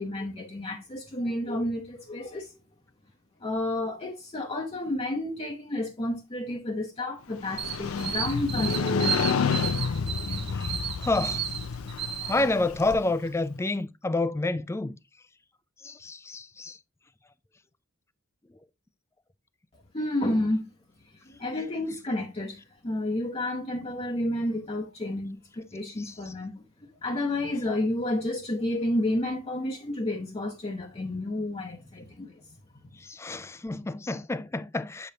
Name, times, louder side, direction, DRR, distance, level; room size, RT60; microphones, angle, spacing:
voice 1, 0.0-2.6 3.4-10.6 19.9-20.7 21.3-26.5 27.0-32.3, left 1 dB, 30° left, 0.7 m, -31 dB
Motorcycle, 7.3-13.3, left 5 dB, 90° left, 0.5 m, -30 dB
sound 1, 7.6-12.9, right 8 dB, 55° right, 0.8 m, -34 dB
voice 2, 11.0-11.4 12.3-14.9 15.8-16.8 26.0-26.1 33.1-35.1, left 2 dB, 15° left, 0.3 m, -29 dB
7.7 x 5.1 x 2.7 m
head